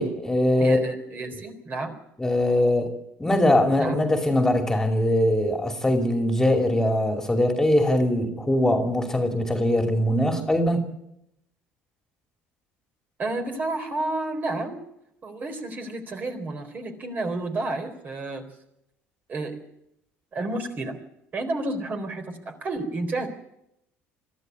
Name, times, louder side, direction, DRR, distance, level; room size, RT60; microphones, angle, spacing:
voice 1, 0.0-0.8 2.2-2.9 3.2-10.8, left 1 dB, 10° left, 2.7 m, -22 dB
voice 2, 0.6-1.9 3.8-4.0 13.2-14.8 15.2-18.4 19.3-19.6 20.3-21.0 21.3-23.3, right 2 dB, 35° right, 3.9 m, -30 dB
22.0 x 13.5 x 9.6 m
supercardioid pair, 105°, 5 cm